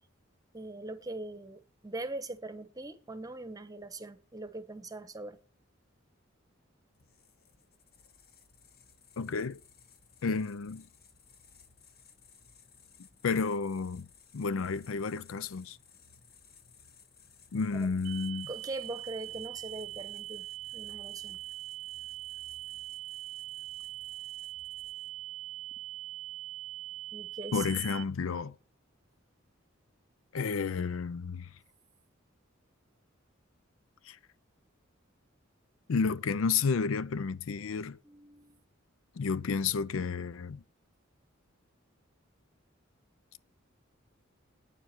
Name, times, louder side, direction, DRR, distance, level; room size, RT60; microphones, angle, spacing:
voice 1, 0.5-5.4 17.8-17.9 18.5-20.5 20.7-21.4 27.1-27.7 38.0-38.6, right 2 dB, 20° right, 1.0 m, -41 dB
sound 1, 6.9-25.3, left 6 dB, 50° left, 1.2 m, -59 dB
voice 2, 9.2-9.6 10.2-10.8 13.2-14.1 14.3-15.8 17.5-18.5 27.5-28.6 30.3-31.5 34.1-34.2 35.9-38.0 39.2-40.6, left 5 dB, 90° left, 0.5 m, -31 dB
sound 2, 18.0-28.0, right 17 dB, 80° right, 0.4 m, -42 dB
9.2 x 7.1 x 5.9 m
head